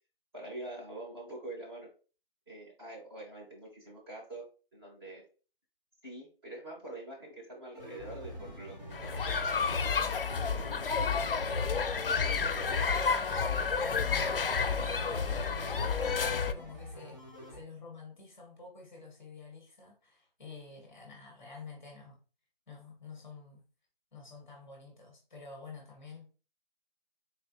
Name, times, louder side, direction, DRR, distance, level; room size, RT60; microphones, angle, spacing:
voice 1, 0.3-1.9 2.5-5.2 6.0-8.8 9.1-10.6, right 2 dB, 25° right, 1.6 m, -45 dB
sound 1, 7.7-17.6, left 1 dB, 50° right, 1.9 m, -45 dB
sound 2, 8.9-16.5, left 5 dB, 70° left, 0.5 m, -30 dB
voice 2, 12.2-22.2 22.7-23.6 24.1-26.3, left 4 dB, 5° left, 1.3 m, -49 dB
4.1 x 3.1 x 2.9 m
figure-of-eight pair, 155°, 29 cm